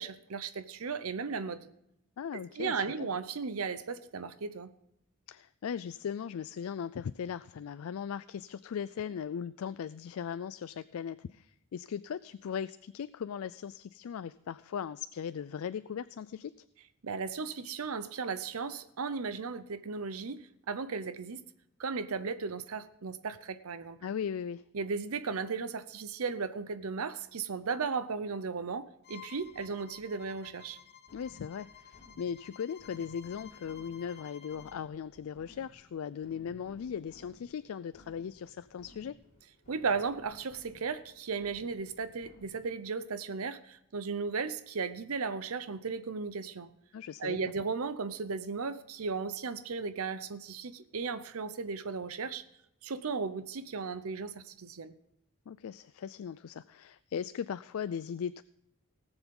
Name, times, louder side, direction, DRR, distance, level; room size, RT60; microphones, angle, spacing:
voice 1, 0.0-1.7 2.6-4.7 17.0-21.4 21.8-24.0 24.7-30.8 39.7-46.7 47.2-52.4 52.8-54.9, right 5 dB, 70° right, 0.7 m, -36 dB
voice 2, 2.2-3.1 5.3-16.7 24.0-24.6 31.1-39.2 46.9-47.4 55.5-58.4, left 7 dB, 70° left, 0.3 m, -38 dB
Bowed string instrument, 29.0-34.8, left 9 dB, 50° left, 0.9 m, -54 dB
sound 1, 29.4-42.9, left 1 dB, 35° left, 3.7 m, -59 dB
18.5 x 7.0 x 5.3 m
head